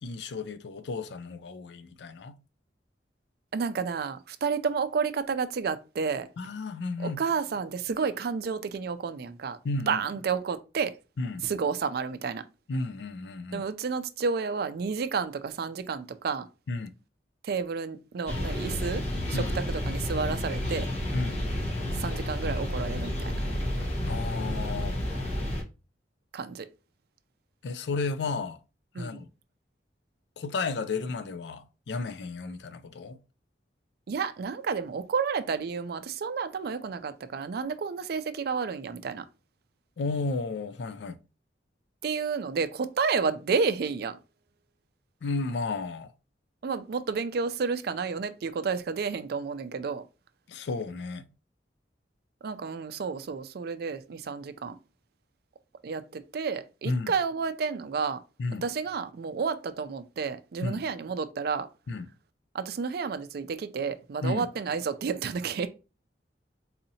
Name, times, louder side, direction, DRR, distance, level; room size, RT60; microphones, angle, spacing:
voice 1, 0.0-2.4 6.4-7.2 9.6-10.0 11.2-11.5 12.7-13.7 16.7-16.9 19.3-19.6 21.1-21.4 24.1-25.0 27.6-28.6 29.0-29.3 30.4-33.2 40.0-41.2 45.2-46.1 50.5-51.3 56.8-57.1 58.4-58.7 60.6-60.8 61.9-62.1 64.2-64.5, left 3 dB, 70° left, 0.4 m, -33 dB
voice 2, 3.5-6.3 7.0-9.6 9.9-11.0 11.4-12.4 13.5-16.5 17.4-19.0 19.3-20.9 21.9-23.4 26.3-26.7 28.9-29.2 34.1-39.2 42.0-44.2 46.6-50.1 52.4-54.8 55.8-58.2 58.6-61.7 62.5-65.7, right 5 dB, 60° right, 0.4 m, -31 dB
sound 1, 18.3-25.6, left 1 dB, 40° left, 1.0 m, -31 dB
4.1 x 2.7 x 2.7 m
head